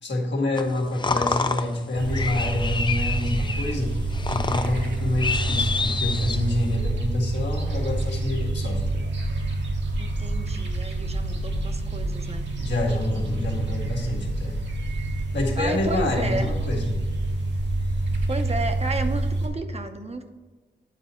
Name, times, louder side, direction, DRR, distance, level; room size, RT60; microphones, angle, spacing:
voice 1, 0.0-4.0 4.3-9.0 12.6-14.6 15.3-17.0, left 1 dB, 80° left, -1 dB, 1.7 m, -27 dB
sound 1, 0.6-6.8, left 4 dB, 25° left, 0.5 m, -29 dB
sound 2, 1.9-19.5, right 2 dB, 80° right, 1.5 m, -27 dB
voice 2, 10.0-12.5 15.6-16.5 18.3-20.3, right 3 dB, 35° right, 6 dB, 0.7 m, -32 dB
9.2 x 4.0 x 5.6 m, 1.3 s
wide cardioid pair, 100°, 18 cm